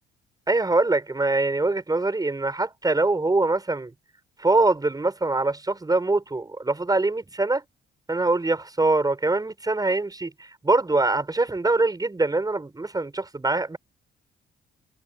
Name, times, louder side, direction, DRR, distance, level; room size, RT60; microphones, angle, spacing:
voice 1, 0.5-3.9 4.4-7.6 8.1-10.3 10.6-13.8, right 2 dB, 20° right, 6.9 m, -23 dB
cardioid pair, 90°, 20 cm